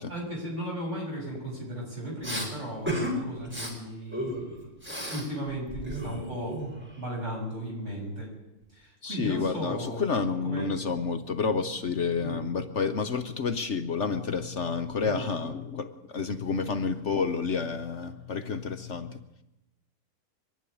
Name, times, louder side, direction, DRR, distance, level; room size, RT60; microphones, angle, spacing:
voice 1, 0.1-4.6 5.1-6.6 7.0-8.3 8.7-10.7 12.2-12.4 15.0-15.3, right 1 dB, 55° right, 8.3 m, -35 dB
Respiratory sounds, 2.2-2.5 2.9-3.1 3.4-3.7 4.1-5.3 5.5-7.0, equal, 5° right, 4.9 m, -33 dB
voice 2, 9.0-19.2, left 5 dB, 55° left, 1.2 m, -30 dB
23.5 x 11.0 x 10.0 m
omnidirectional pair, 1.5 m